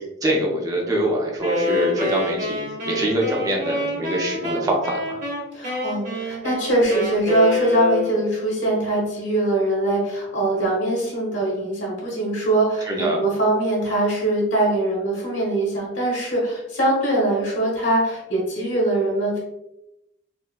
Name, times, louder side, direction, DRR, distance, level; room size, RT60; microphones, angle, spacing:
voice 1, 0.0-5.2 12.8-13.2, right 1 dB, 20° right, -1 dB, 0.5 m, -24 dB
Wind instrument woodwind instrument, 1.4-8.3, left 2 dB, 40° right, 1.0 m, -27 dB
voice 2, 5.5-19.4, right 1 dB, 70° left, -4 dB, 1.3 m, -22 dB
4.2 x 2.1 x 2.2 m, 0.89 s
head